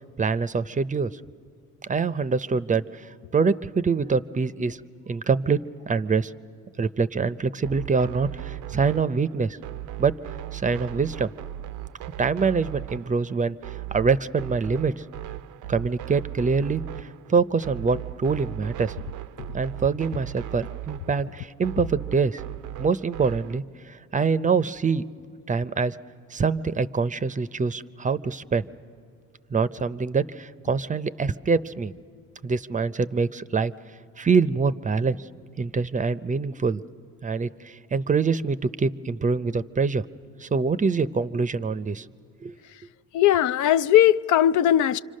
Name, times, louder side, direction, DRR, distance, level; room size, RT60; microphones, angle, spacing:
voice 1, 0.2-1.1 1.9-4.8 5.1-5.6 5.9-6.3 6.8-9.6 10.0-10.1 10.5-11.3 12.2-13.6 13.9-15.0 15.7-16.8 17.3-18.9 19.5-22.4 22.8-25.0 25.5-26.0 26.3-28.7 29.5-31.9 32.4-33.7 34.2-35.2 35.6-36.8 37.2-40.0 40.4-42.0 42.4-42.5, right 5 dB, 25° right, 0.5 m, -25 dB
sound 1, 7.6-23.6, right 15 dB, 75° right, 0.5 m, -37 dB
voice 2, 43.1-45.0, left 11 dB, 75° left, 0.5 m, -19 dB
27.5 x 25.5 x 6.5 m
cardioid pair, 90°, 30 cm